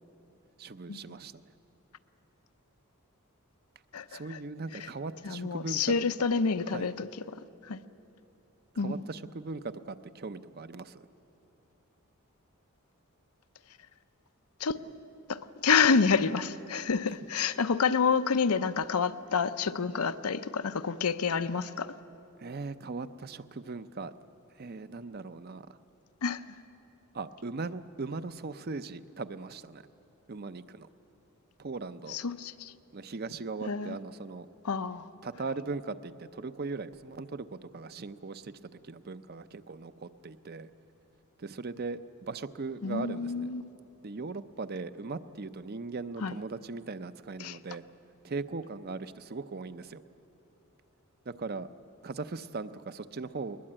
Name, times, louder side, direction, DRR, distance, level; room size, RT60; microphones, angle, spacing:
voice 1, 0.6-1.4 4.1-5.9 6.7-6.9 8.8-11.1 22.4-24.1 24.6-25.8 27.1-29.8 30.3-30.9 31.6-32.2 32.9-34.5 35.2-38.5 38.8-40.7 41.4-43.5 44.0-47.8 48.2-50.0 51.3-51.7 52.0-53.6, right 3 dB, 45° right, 12 dB, 0.6 m, -39 dB
voice 2, 3.9-4.4 5.2-7.1 7.7-7.8 8.8-9.0 14.6-14.8 15.3-21.9 26.2-26.4 32.1-32.7 33.6-34.0 34.6-35.1 42.8-43.6 46.2-46.3 47.4-47.6, left 5 dB, 90° left, 11 dB, 0.7 m, -28 dB
21.0 x 20.5 x 8.8 m, 2.9 s
head